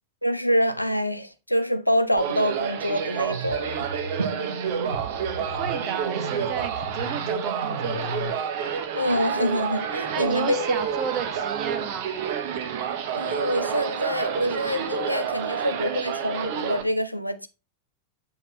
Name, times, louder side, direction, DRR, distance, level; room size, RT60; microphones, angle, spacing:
voice 1, 0.2-3.7 8.9-10.6 13.1-17.5, equal, 90° left, 0.6 m, -26 dB
sound 1, 2.2-16.8, right 8 dB, 50° right, 1.0 m, -29 dB
sound 2, 3.3-8.3, right 2 dB, 80° right, 1.0 m, -35 dB
voice 2, 4.6-8.3 10.1-12.1, right 7 dB, 35° right, 1.2 m, -34 dB
7.8 x 5.7 x 3.0 m
figure-of-eight pair, 90°, 0 cm